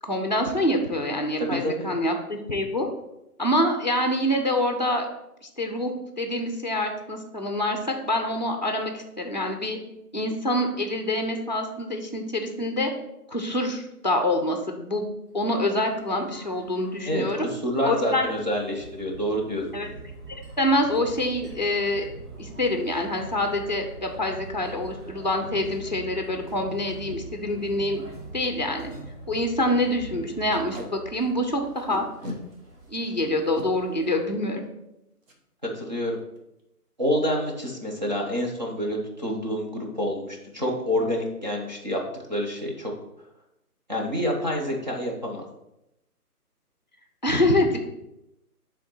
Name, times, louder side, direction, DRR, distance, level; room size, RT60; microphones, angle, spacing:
voice 1, 0.0-2.9 3.4-5.1 5.4-5.9 6.2-9.8 10.1-12.9 13.3-17.4 17.8-18.3 19.7-19.9 20.3-22.1 22.4-28.0 28.3-28.9 29.3-32.0 32.9-34.6 47.2-47.8, left 1 dB, 30° left, 4 dB, 0.6 m, -26 dB
voice 2, 1.4-1.9 17.1-17.2 17.6-19.6 35.7-36.2 37.0-42.0 42.3-42.9 43.9-45.4, equal, 30° right, -1 dB, 0.7 m, -27 dB
sound 1, 15.3-34.5, right 2 dB, 75° right, 2.2 m, -44 dB
Packing tape duct tape, 26.9-27.0 27.5-27.6 27.8-28.0 28.4-28.5 28.8-29.0 29.3-29.5 30.5-30.9 31.9-32.4 33.3-33.7 35.2-35.4 35.8-35.9 36.2-36.6, equal, 55° right, 1.4 m, -38 dB
7.6 x 3.5 x 4.2 m, 0.88 s
hypercardioid pair, 170°, 46 cm